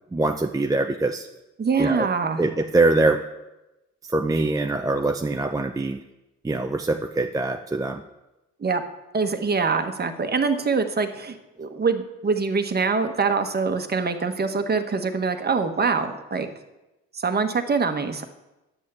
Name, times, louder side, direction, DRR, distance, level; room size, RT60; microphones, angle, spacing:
voice 1, 0.1-1.3 1.8-2.1 2.4-3.2 4.1-6.0 6.4-8.0, right 2 dB, 10° right, 4 dB, 0.5 m, -23 dB
voice 2, 1.6-2.4 8.6-8.8 9.1-16.5 17.1-18.2, right 4 dB, 30° right, 7 dB, 1.2 m, -24 dB
10.0 x 6.4 x 8.3 m, 1.0 s
cardioid pair, 90°, 30 cm